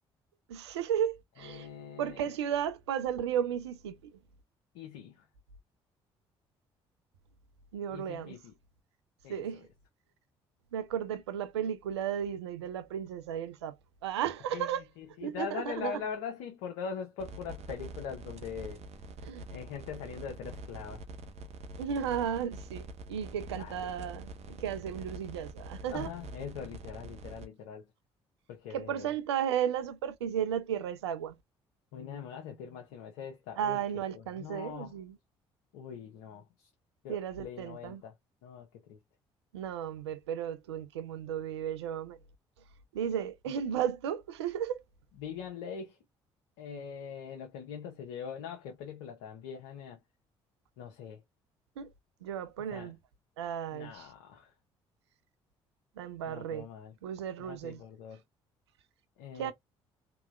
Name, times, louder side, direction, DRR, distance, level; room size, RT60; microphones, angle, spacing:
voice 1, 0.5-1.7 2.0-3.9 7.7-8.3 9.3-9.7 10.7-13.8 14.0-14.8 15.2-16.0 19.2-19.4 21.8-26.1 28.7-31.3 33.6-35.2 37.1-38.0 39.5-42.2 42.9-44.8 51.8-51.9 52.2-53.0 53.4-54.1 56.0-56.7 57.0-57.8 59.4-59.5, right 9 dB, 90° right, 0.5 m, -34 dB
voice 2, 1.4-2.4 4.7-5.3 7.9-8.5 9.2-9.7 14.5-18.8 19.5-21.0 23.6-23.9 25.9-27.9 28.5-29.1 31.9-33.8 34.1-35.0 35.7-36.7 37.0-38.1 38.4-39.0 45.2-46.0 46.6-50.0 50.8-51.2 52.6-52.9 53.7-54.5 56.2-56.9 57.4-58.2 59.2-59.5, left 7 dB, 75° left, 0.8 m, -42 dB
sound 1, 17.2-27.5, right 2 dB, 55° right, 0.8 m, -45 dB
3.3 x 2.9 x 2.3 m
hypercardioid pair, 55°, 14 cm